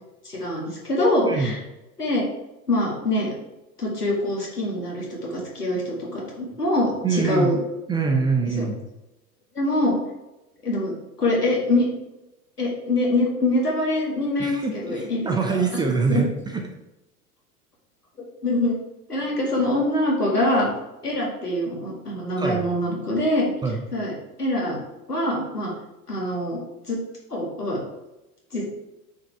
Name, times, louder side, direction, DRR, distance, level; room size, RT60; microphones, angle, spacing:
voice 1, 0.2-1.6 2.0-2.2 2.7-3.3 3.8-7.6 8.6-8.7 9.5-10.0 10.6-10.9 11.2-11.9 12.6-15.6 16.1-16.2 18.4-18.8 19.1-20.7 21.0-23.5 23.9-24.1 24.4-24.8 25.1-25.7 26.1-26.6 26.9-27.0 27.3-27.8 28.5-28.7, left 1 dB, 90° left, -3 dB, 2.2 m, -24 dB
voice 2, 7.0-7.5 7.9-8.8 14.4-16.6 22.4-22.7 23.6-23.8, right 4 dB, 10° right, 3 dB, 0.4 m, -24 dB
8.5 x 4.7 x 3.4 m, 0.97 s
figure-of-eight pair, 85°, 46 cm